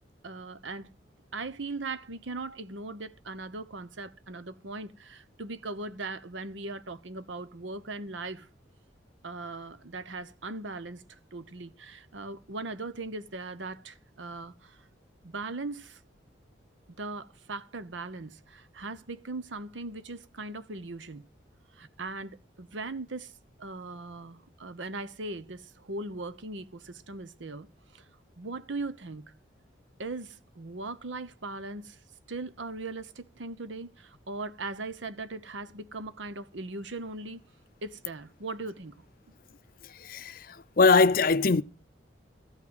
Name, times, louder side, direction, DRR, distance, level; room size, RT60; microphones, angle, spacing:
voice 1, 0.2-0.9 1.3-8.5 9.2-14.8 15.2-16.0 17.0-21.3 21.7-27.7 27.9-28.1 28.4-29.3 30.0-32.0 32.3-37.4 37.8-39.0, right 3 dB, 80° right, 1.0 m, -39 dB
voice 2, 40.0-40.4 40.8-41.6, left 4 dB, 50° left, 0.6 m, -21 dB
14.5 x 6.1 x 8.9 m
head